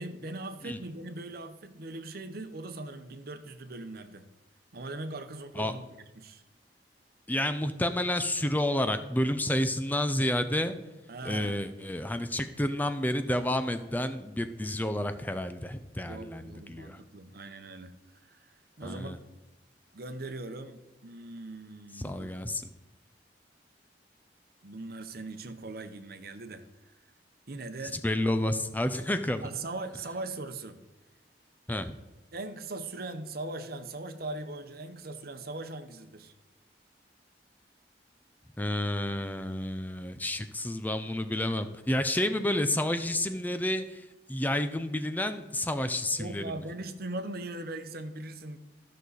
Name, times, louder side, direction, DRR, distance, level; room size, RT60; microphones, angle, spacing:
voice 1, 0.0-4.3 4.7-5.8 6.2-6.4 11.1-11.8 16.0-19.2 19.9-22.3 24.6-26.6 27.5-28.0 29.4-30.8 32.3-36.3 46.2-48.6, right 2 dB, 60° right, 9 dB, 0.8 m, -40 dB
voice 2, 7.3-10.8 11.2-17.0 18.8-19.2 22.0-22.6 27.9-29.4 31.7-31.9 38.6-44.0 44.3-46.4, left 1 dB, 10° left, 9 dB, 0.5 m, -30 dB
13.5 x 6.4 x 4.1 m, 1.0 s
head